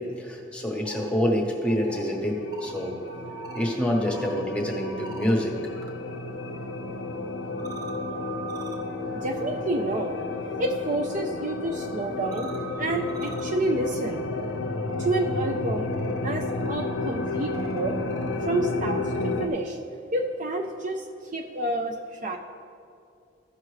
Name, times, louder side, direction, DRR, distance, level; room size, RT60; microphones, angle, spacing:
voice 1, 0.2-2.9 3.5-5.6, equal, 5° left, 0 dB, 1.0 m, -26 dB
sound 1, 0.6-5.9 6.2-19.5, right 3 dB, 20° right, 0.8 m, -45 dB
sound 2, 1.7-19.5, left 3 dB, 70° left, 0.5 m, -32 dB
voice 2, 9.1-10.2 10.6-12.5 12.8-14.2 15.0-15.9 16.2-18.0 18.5-19.8 20.1-21.1 21.3-22.4, right 2 dB, 40° right, 3 dB, 0.5 m, -29 dB
14.5 x 5.9 x 3.2 m, 2.5 s
head